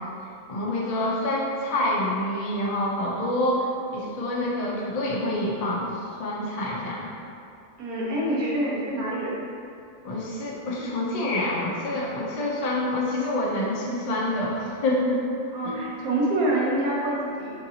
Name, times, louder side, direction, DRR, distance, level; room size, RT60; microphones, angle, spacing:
voice 1, 0.5-5.9 6.2-7.1 10.0-15.2 15.6-15.8, left 1 dB, 75° left, -4 dB, 0.3 m, -27 dB
voice 2, 7.8-9.3 15.5-17.5, right 1 dB, 80° right, -6 dB, 1.3 m, -26 dB
4.6 x 2.6 x 2.7 m, 2.5 s
omnidirectional pair, 1.5 m